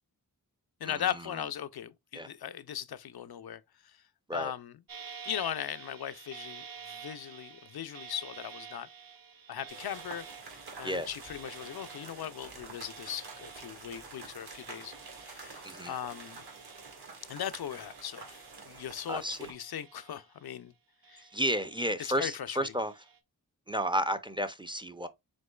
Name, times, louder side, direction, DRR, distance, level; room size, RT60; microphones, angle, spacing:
voice 1, 0.8-3.6 4.3-4.7 5.2-8.9 9.5-10.2 10.8-16.4 17.3-20.7 21.1-21.2 22.0-22.7, left 10 dB, 75° left, 0.5 m, -38 dB
sound 1, 4.9-17.5 17.8-19.0 19.4-20.6 21.0-22.1 22.7-23.2, right 7 dB, 65° right, 0.8 m, -50 dB
sound 2, 9.7-19.5, right 4 dB, 80° right, 1.7 m, -48 dB
voice 2, 15.6-15.9 19.1-19.5 21.2-22.9 23.7-25.1, equal, 15° right, 0.4 m, -32 dB
5.3 x 3.6 x 2.2 m
wide cardioid pair, 85°, 38 cm